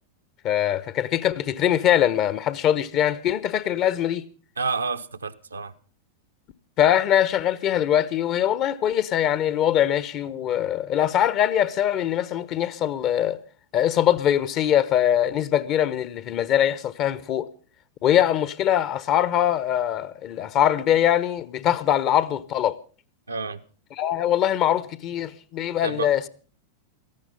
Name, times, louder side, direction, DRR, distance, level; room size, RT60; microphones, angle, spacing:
voice 1, 0.4-4.3 6.8-13.4 13.7-17.5 18.0-22.8 23.9-26.3, left 11 dB, 35° left, 0.9 m, -22 dB
voice 2, 4.6-5.7 23.3-23.6 25.8-26.1, right 4 dB, 75° right, 0.9 m, -29 dB
17.5 x 14.5 x 5.3 m
figure-of-eight pair, 90°, 0 cm